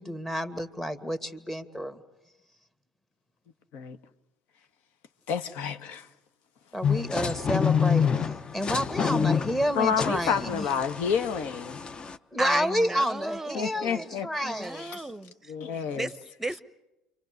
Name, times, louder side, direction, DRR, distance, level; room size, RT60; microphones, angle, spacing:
voice 1, 0.0-2.0 6.7-10.7 12.3-15.0, equal, 10° left, 8 dB, 2.2 m, -30 dB
voice 2, 5.3-6.1 9.8-11.8 13.5-14.3 14.7-15.0 15.5-16.1, left 7 dB, 65° left, 9 dB, 1.6 m, -29 dB
sound 1, 6.8-12.2, left 6 dB, 30° left, 1.0 m, -27 dB
voice 3, 12.4-14.0 14.4-15.5 15.9-16.6, right 2 dB, 10° right, 13 dB, 1.1 m, -35 dB
29.5 x 25.0 x 6.7 m, 0.97 s
supercardioid pair, 85°, 3 cm